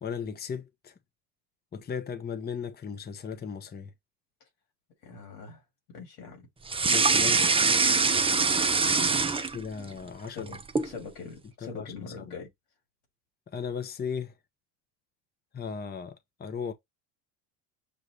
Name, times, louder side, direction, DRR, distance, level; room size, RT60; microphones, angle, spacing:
voice 1, 0.0-0.9 1.7-3.9 6.8-7.4 9.5-10.5 11.7-11.9 13.5-14.3 15.5-16.7, left 6 dB, 20° left, 0.8 m, -36 dB
voice 2, 5.0-5.6 5.9-6.5 9.0-9.5 10.3-12.5, left 4 dB, 85° left, 3.1 m, -43 dB
sound 1, 6.7-9.9 10.2-10.9, right 4 dB, 10° right, 0.6 m, -23 dB
6.8 x 2.5 x 3.2 m
supercardioid pair, 85°, 47 cm